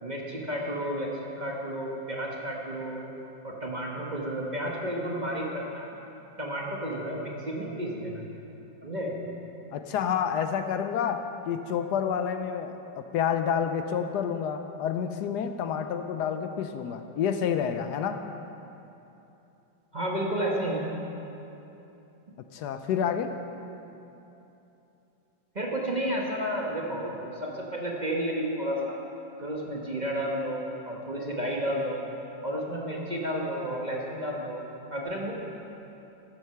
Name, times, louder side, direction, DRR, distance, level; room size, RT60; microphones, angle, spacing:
voice 1, 0.0-3.0 3.4-5.9 6.4-8.2 8.8-9.2 19.9-20.8 25.5-29.0 29.4-32.0 32.4-34.6 34.9-35.3, equal, 25° right, -2 dB, 1.1 m, -31 dB
voice 2, 9.7-18.2 22.5-23.3, left 8 dB, 70° left, 8 dB, 1.0 m, -29 dB
14.5 x 7.9 x 5.7 m, 2.9 s
omnidirectional pair, 2.1 m